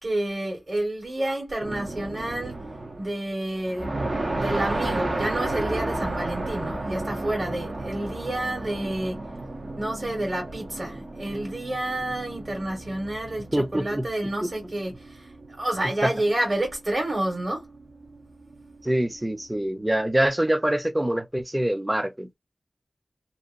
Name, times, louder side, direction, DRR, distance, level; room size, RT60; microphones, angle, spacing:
voice 1, 0.0-2.6 3.0-9.2 9.8-17.7, right 1 dB, 50° right, 1.6 m, -29 dB
sound 1, 1.6-3.2 3.6-20.0, right 2 dB, 70° right, 0.8 m, -33 dB
voice 2, 13.5-14.1 14.4-14.5 16.0-16.1 18.8-22.4, right 1 dB, 20° right, 0.5 m, -25 dB
2.8 x 2.2 x 2.6 m
wide cardioid pair, 55°, 0 cm